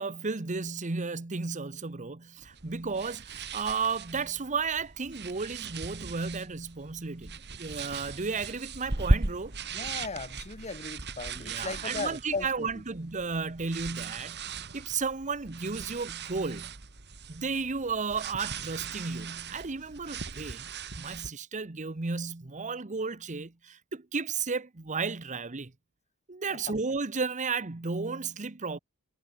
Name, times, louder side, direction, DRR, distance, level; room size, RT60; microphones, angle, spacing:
voice 1, 0.0-9.6 11.4-16.8 17.3-20.7 21.0-25.7 26.3-28.8, right 4 dB, 35° right, 1.0 m, -33 dB
sound 1, 2.4-21.3, right 3 dB, 50° right, 2.0 m, -37 dB
voice 2, 9.7-12.7, left 3 dB, 30° left, 2.1 m, -37 dB
head